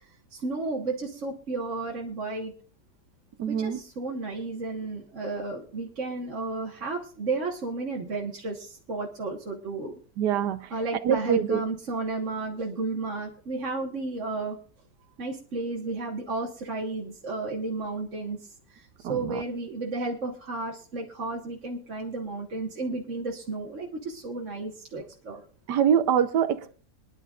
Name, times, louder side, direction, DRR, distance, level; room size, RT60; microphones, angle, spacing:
voice 1, 0.3-2.5 3.5-10.0 10.7-14.6 15.2-18.4 18.7-25.4, right 3 dB, 50° right, -1 dB, 1.8 m, -33 dB
voice 2, 3.4-3.8 10.2-10.7 11.0-11.6 19.0-19.4 25.7-26.7, right 8 dB, 90° right, 12 dB, 1.5 m, -24 dB
24.0 x 10.5 x 2.5 m, 0.41 s
omnidirectional pair, 1.7 m